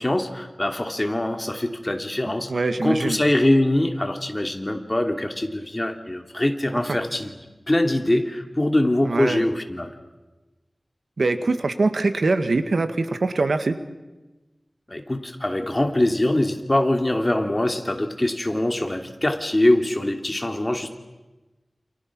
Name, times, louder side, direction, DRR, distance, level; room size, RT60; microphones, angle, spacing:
voice 1, 0.0-2.5 2.8-7.3 7.7-9.9 14.9-20.9, left 1 dB, 25° left, 5 dB, 2.9 m, -23 dB
voice 2, 2.5-3.2 6.9-7.0 9.0-9.4 11.2-13.8, right 3 dB, 80° right, 9 dB, 1.8 m, -23 dB
28.5 x 28.5 x 6.2 m, 1.1 s
wide cardioid pair, 75°, 0 cm